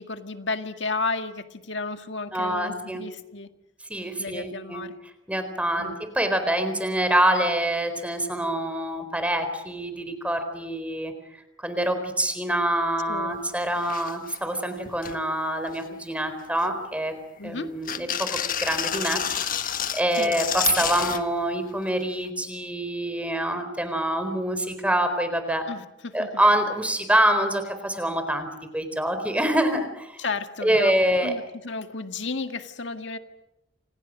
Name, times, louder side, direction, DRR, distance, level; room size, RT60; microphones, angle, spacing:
voice 1, 0.0-3.5 4.2-4.9 5.8-6.0 13.1-13.3 17.4-17.7 20.1-20.4 25.7-26.4 30.2-30.9 31.2-33.2, left 3 dB, 65° left, 7 dB, 2.0 m, -33 dB
voice 2, 2.3-3.0 3.9-4.8 5.3-11.1 11.6-17.1 17.4-18.3 18.6-19.6 19.9-25.6 26.1-28.5 28.7-30.2 30.6-31.3, right 1 dB, 5° right, 8 dB, 4.1 m, -25 dB
sound 1, 13.4-13.5 13.7-14.4 14.8-15.2 15.6-16.1 16.6-17.4 17.8-21.2 22.3-22.4, left 9 dB, 45° left, 1.4 m, -30 dB
30.0 x 27.0 x 6.4 m, 0.91 s
head